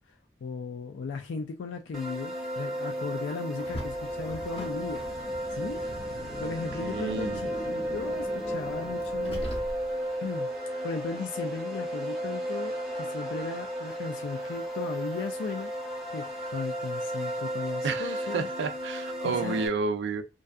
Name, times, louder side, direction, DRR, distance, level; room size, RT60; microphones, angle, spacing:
voice 1, 0.4-5.0 5.5-6.0 6.4-9.4 10.2-10.5 10.8-15.7 16.1-18.5 19.2-19.6, left 4 dB, 80° left, 0.3 m, -36 dB
sound 1, 1.9-19.7, equal, 5° right, 0.7 m, -34 dB
Car, 3.6-10.1, equal, 30° left, 0.7 m, -40 dB
voice 2, 6.8-7.4 17.8-20.2, right 4 dB, 65° right, 0.4 m, -31 dB
2.6 x 2.3 x 2.4 m
head